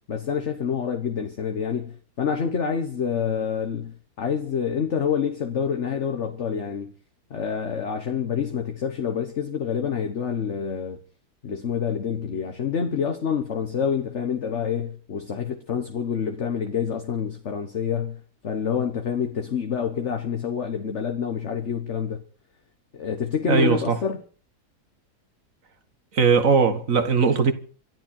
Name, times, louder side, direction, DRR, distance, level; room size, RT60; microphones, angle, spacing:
voice 1, 0.1-6.9 7.3-11.0 11.4-22.2 22.9-24.2, left 7 dB, 45° left, 1.5 m, -27 dB
voice 2, 23.5-24.0 26.1-27.5, right 5 dB, 55° right, 2.0 m, -19 dB
27.0 x 11.5 x 4.5 m
omnidirectional pair, 1.7 m